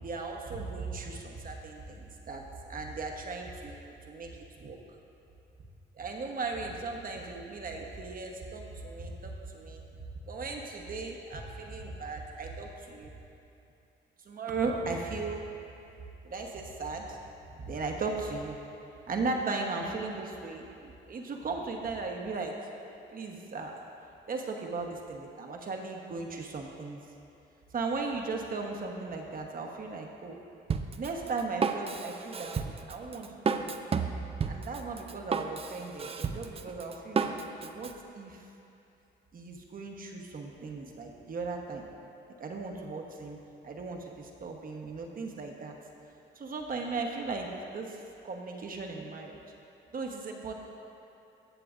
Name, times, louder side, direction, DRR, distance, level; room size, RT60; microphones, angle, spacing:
voice 1, 0.0-4.3 4.6-4.8 5.9-10.0 10.3-13.1 14.2-15.5 16.2-17.2 17.5-18.6 19.1-22.5 23.1-23.9 24.3-27.0 27.7-30.4 31.0-33.8 34.5-37.3 37.6-38.5 39.3-41.9 42.4-43.4 43.6-45.7 46.3-49.4 49.9-50.7, right 3 dB, 45° right, 1 dB, 1.1 m, -37 dB
Drum kit, 30.7-37.9, right 5 dB, 30° right, 0.4 m, -32 dB
16.0 x 6.7 x 2.5 m, 2.7 s
cardioid pair, 90°, 20 cm